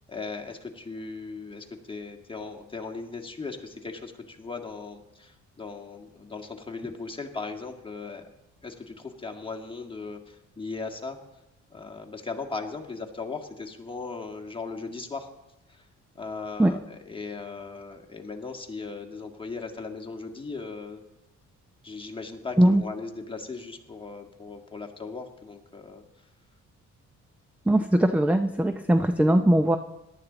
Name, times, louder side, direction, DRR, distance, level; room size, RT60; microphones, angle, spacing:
voice 1, 0.1-8.3 8.6-11.2 11.7-15.3 15.7-15.9 16.2-21.0 21.8-26.0, left 4 dB, 15° left, 3 dB, 1.8 m, -38 dB
voice 2, 27.7-29.8, right 1 dB, 5° right, 9 dB, 0.5 m, -20 dB
17.5 x 11.5 x 4.0 m, 0.94 s
cardioid pair, 90°, 30 cm